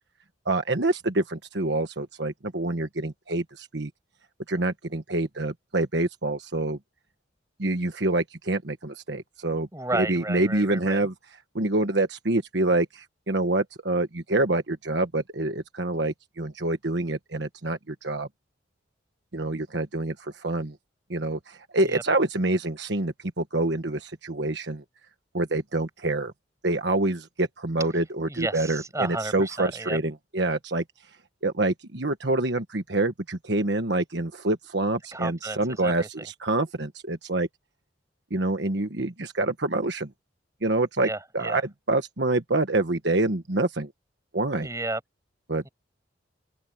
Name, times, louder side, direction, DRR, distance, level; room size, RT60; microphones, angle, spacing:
voice 1, 0.4-3.9 4.5-6.8 7.6-9.7 9.9-11.1 11.5-18.3 19.3-20.8 21.1-24.8 25.3-26.3 26.6-30.8 31.4-37.5 38.3-40.1 40.6-41.1 41.3-41.6 41.9-43.9 44.3-44.7 45.5-45.6, right 2 dB, 65° right, 1.4 m, -26 dB
voice 2, 9.7-11.0 21.9-22.0 28.3-30.0 35.1-36.1 41.0-41.6 44.6-45.0, right 2 dB, 15° right, 6.5 m, -32 dB
open air
head